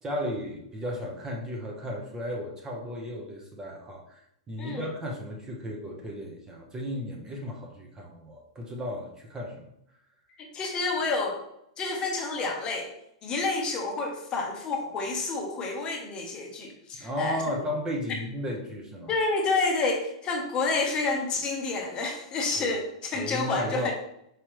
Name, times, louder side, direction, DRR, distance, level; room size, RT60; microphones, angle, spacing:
voice 1, 0.0-4.2 4.5-9.7 17.0-19.1 22.6-22.7 23.1-23.9, equal, 15° right, 0 dB, 0.8 m, -34 dB
voice 2, 10.4-11.4 11.8-12.9 13.2-17.4 19.1-23.9, left 3 dB, 25° left, 1 dB, 0.8 m, -29 dB
4.8 x 2.9 x 3.0 m, 0.77 s
hypercardioid pair, 140°, 3 cm